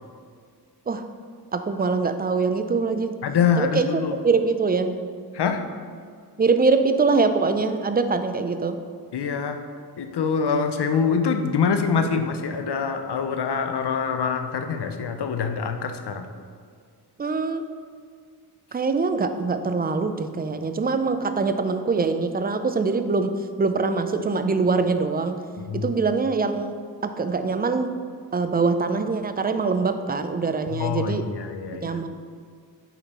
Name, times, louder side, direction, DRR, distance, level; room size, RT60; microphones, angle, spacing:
voice 1, 1.5-3.1 3.6-3.9 4.2-5.0 6.4-8.8 17.2-17.6 18.7-23.3 23.6-25.4 25.7-26.8 27.0-27.9 28.3-31.3 31.8-32.1, right 4 dB, 25° right, 9 dB, 0.3 m, -23 dB
voice 2, 3.2-4.2 5.3-5.6 9.1-9.6 10.0-16.2 25.6-25.9 30.7-32.0, left 6 dB, 75° left, 7 dB, 0.6 m, -25 dB
5.5 x 4.3 x 4.2 m, 2.1 s
wide cardioid pair, 55°, 40 cm